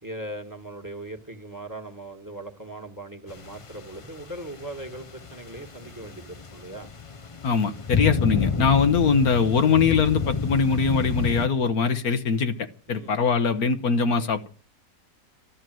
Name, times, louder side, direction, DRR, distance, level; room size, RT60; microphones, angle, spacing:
voice 1, 0.0-6.9 12.9-13.2, right 1 dB, 10° right, 1.7 m, -39 dB
sound 1, 3.3-11.5, left 5 dB, 35° left, 0.5 m, -30 dB
voice 2, 7.4-12.6 12.9-14.5, left 5 dB, 70° left, 1.5 m, -22 dB
13.5 x 13.0 x 7.7 m
omnidirectional pair, 1.7 m